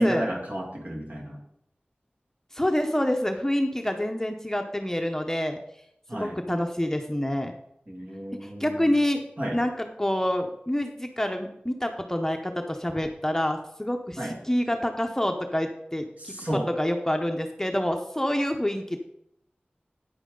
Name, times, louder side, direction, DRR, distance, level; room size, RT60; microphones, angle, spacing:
voice 1, 0.0-1.4 6.1-6.4 7.9-9.0 9.4-9.6 14.2-14.4 16.2-16.7, right 1 dB, 45° right, -1 dB, 2.3 m, -31 dB
voice 2, 2.5-5.6 6.2-7.5 8.4-9.2 9.5-14.2 14.4-19.0, left 1 dB, 15° left, 4 dB, 0.8 m, -27 dB
9.5 x 8.8 x 3.8 m, 0.77 s
wide cardioid pair, 50°, 4 cm